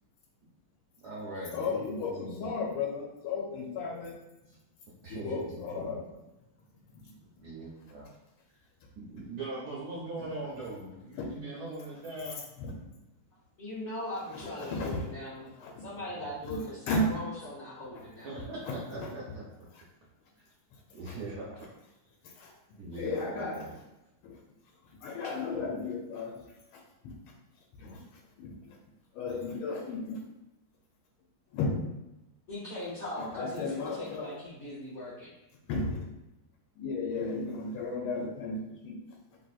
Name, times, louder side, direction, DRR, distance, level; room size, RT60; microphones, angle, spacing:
voice 1, 1.0-2.6 5.0-5.4 5.7-5.9 7.4-8.1 9.0-12.4 16.1-16.2 18.2-19.4 20.9-21.7 22.8-23.7, right 2 dB, 75° right, -5 dB, 0.9 m, -41 dB
voice 2, 1.5-4.2 5.1-6.0 6.9-7.4 11.1-11.3 12.6-12.9 14.3-15.9 16.4-17.1 17.9-18.0 19.0-19.1 19.7-19.8 20.7-20.8 21.1-21.2 22.2-22.5 22.9-23.7 24.2-24.4 24.8-27.2 27.8-28.8 29.1-30.2 31.5-31.9 33.2-34.4 35.7-36.1 36.8-39.1, left 3 dB, 90° left, 0 dB, 1.4 m, -35 dB
voice 3, 13.6-15.5 15.8-18.3 32.5-33.7 34.0-35.3, left 1 dB, 50° left, -9 dB, 0.9 m, -39 dB
3.3 x 2.6 x 2.3 m, 0.94 s
omnidirectional pair, 2.3 m